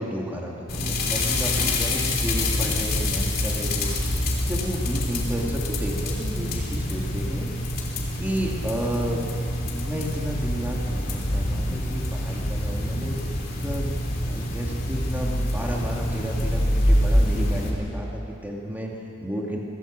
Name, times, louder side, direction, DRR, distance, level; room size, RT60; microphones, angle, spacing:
voice 1, 0.0-3.9 4.5-7.5 8.2-9.2 9.7-13.2 13.6-13.9 14.2-19.6, equal, 10° right, -2 dB, 2.4 m, -32 dB
sound 1, 0.7-17.7, left 1 dB, 45° left, 3.2 m, -26 dB
25.0 x 17.0 x 7.5 m, 2.7 s
head